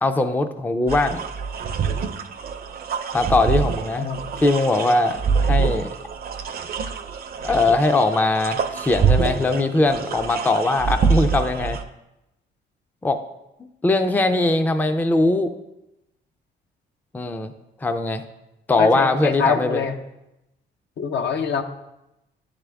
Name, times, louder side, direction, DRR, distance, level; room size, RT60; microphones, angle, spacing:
voice 1, 0.0-1.2 3.1-4.1 4.4-5.9 7.4-11.8 13.0-13.2 13.8-15.5 17.1-17.5 17.8-18.2 18.7-19.8, left 2 dB, 10° left, 8 dB, 0.4 m, -20 dB
sound 1, 0.9-11.8, right 6 dB, 50° right, 0.6 m, -25 dB
voice 2, 4.0-4.3 18.8-20.0 21.0-21.6, left 6 dB, 65° left, 6 dB, 0.7 m, -24 dB
10.5 x 3.6 x 3.4 m, 0.91 s
cardioid pair, 90°, 20 cm